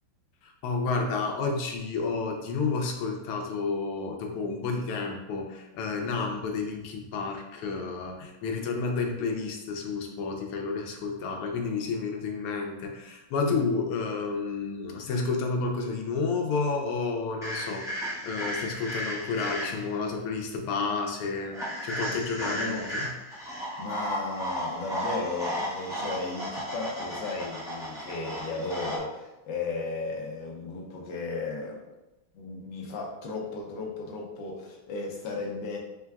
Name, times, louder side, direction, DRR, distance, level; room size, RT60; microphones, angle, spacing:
voice 1, 0.4-23.1, left 4 dB, 90° left, 2 dB, 1.6 m, -31 dB
sound 1, 17.4-20.0 21.5-29.0, equal, 5° right, 0.5 m, -34 dB
voice 2, 22.4-22.9 23.8-31.8 32.3-35.8, left 3 dB, 65° left, -1 dB, 1.2 m, -35 dB
4.5 x 2.2 x 3.4 m, 0.97 s
omnidirectional pair, 2.4 m